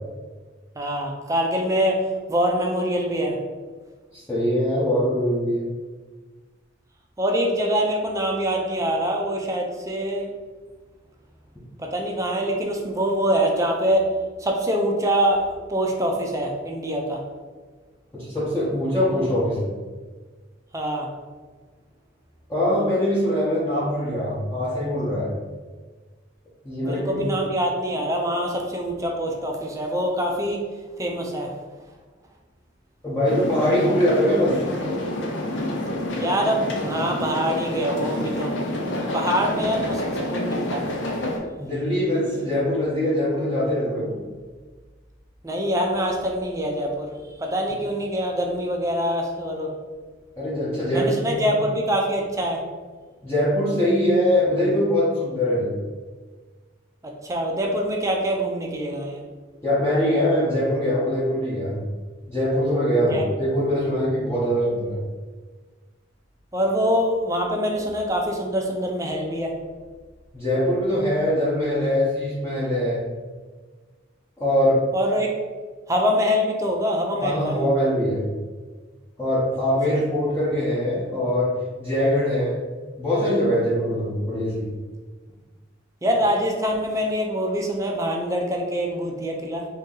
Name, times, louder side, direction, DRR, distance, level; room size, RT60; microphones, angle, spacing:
voice 1, 0.8-3.4 7.2-10.3 11.8-14.0 14.4-17.2 20.7-21.1 26.8-30.6 31.0-31.5 36.1-38.5 39.1-40.0 40.3-40.9 45.4-47.1 47.4-49.7 50.9-52.6 57.2-59.2 63.1-63.2 66.5-69.5 74.9-75.3 75.9-77.6 86.0-89.7, equal, 15° right, 1 dB, 0.4 m, -24 dB
voice 2, 4.1-5.7 18.1-19.7 22.5-25.3 26.6-27.3 33.0-34.6 41.6-44.2 50.4-51.4 53.2-55.7 59.6-61.8 62.3-65.0 70.3-73.0 74.4-74.8 77.2-78.2 79.2-81.5 81.8-82.6 83.0-84.7, equal, 15° left, -11 dB, 0.7 m, -22 dB
sound 1, 33.2-41.4, left 1 dB, 75° left, 0.6 m, -28 dB
2.7 x 2.7 x 3.8 m, 1.4 s
head